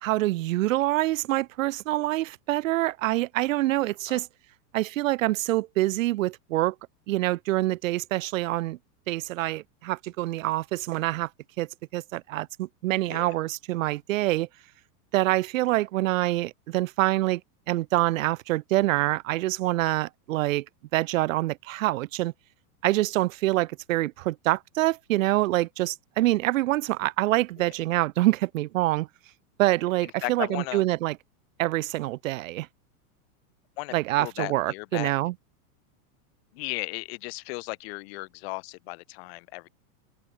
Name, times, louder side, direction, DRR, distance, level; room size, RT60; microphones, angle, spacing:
voice 1, 0.0-4.3 4.7-6.7 7.1-8.8 9.1-11.3 11.6-14.5 15.1-17.4 17.7-20.6 20.9-22.3 22.8-29.1 29.6-31.2 31.6-32.7 33.9-35.3, right 17 dB, 55° right, 2.7 m, -26 dB
voice 2, 30.0-30.8 33.8-35.1 36.5-39.7, left 26 dB, 40° left, 1.7 m, -36 dB
open air
supercardioid pair, 170°, 46 cm